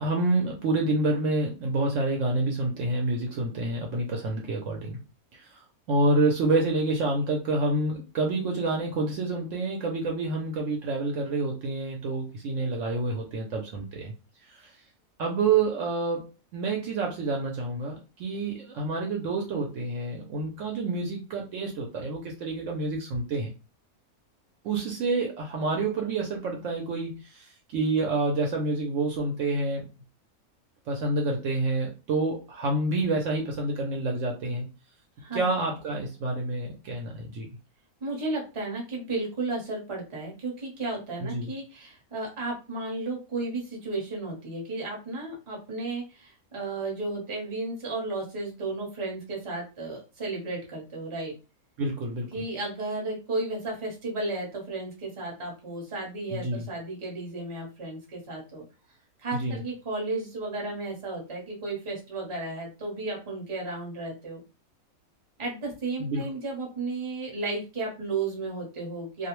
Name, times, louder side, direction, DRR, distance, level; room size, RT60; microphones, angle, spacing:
voice 1, 0.0-5.0 5.3-5.6 5.9-14.1 14.5-14.7 15.2-16.3 16.5-23.5 24.6-29.8 30.9-34.6 35.3-37.5 41.2-41.5 51.8-52.3 56.3-56.7 59.3-59.6 66.0-66.3, right 2 dB, 70° right, 1 dB, 0.9 m, -28 dB
voice 2, 38.0-51.3 52.3-58.6 59.2-64.4 65.4-69.3, right 2 dB, 30° right, -1 dB, 0.7 m, -33 dB
2.5 x 2.0 x 3.0 m, 0.31 s
omnidirectional pair, 1.5 m